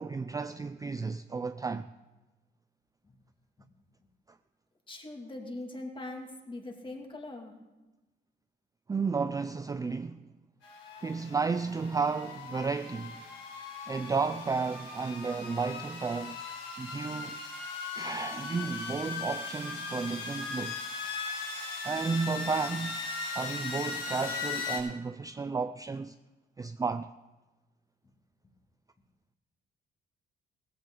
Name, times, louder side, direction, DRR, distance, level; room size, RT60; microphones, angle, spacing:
voice 1, 0.0-1.9 8.9-10.3 11.0-13.2 13.9-16.4 16.8-17.4 17.9-20.9 21.8-26.1 26.6-27.1, right 4 dB, 20° right, 0.4 m, -33 dB
voice 2, 4.9-7.5, left 2 dB, 25° left, 2.3 m, -41 dB
sound 1, 10.6-24.8, left 4 dB, 70° left, 4.0 m, -38 dB
16.5 x 15.0 x 3.8 m
cardioid pair, 90°, 20 cm